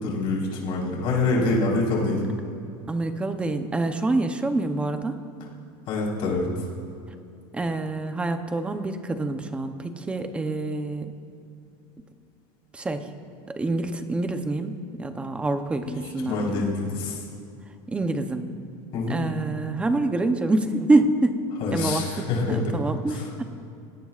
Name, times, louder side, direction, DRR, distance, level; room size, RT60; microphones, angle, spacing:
voice 1, 0.0-2.2 5.9-6.5 15.8-16.0 16.2-17.2 18.9-19.2 21.6-22.8 23.1-23.3, left 3 dB, 45° left, -3 dB, 4.3 m, -26 dB
voice 2, 2.9-5.1 7.5-11.1 12.7-13.1 13.5-16.7 17.9-18.5 19.1-21.4 21.7-23.4, right 2 dB, 10° right, 7 dB, 0.7 m, -26 dB
26.0 x 18.0 x 2.5 m, 2.6 s
cardioid pair, 165°, 13 cm